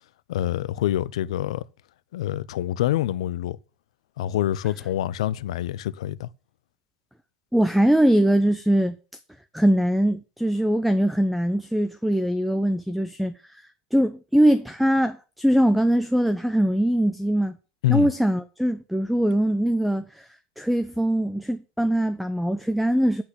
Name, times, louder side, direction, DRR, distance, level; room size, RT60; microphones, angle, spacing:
voice 1, 0.3-1.6 2.1-3.6 4.2-6.3 17.8-18.1, left 12 dB, 75° left, 0.5 m, -26 dB
voice 2, 7.5-9.0 9.5-13.5 13.9-17.6 17.9-20.3 20.6-23.2, right 1 dB, ahead, 0.8 m, -22 dB
8.6 x 5.7 x 7.8 m
hypercardioid pair, 80°, 3 cm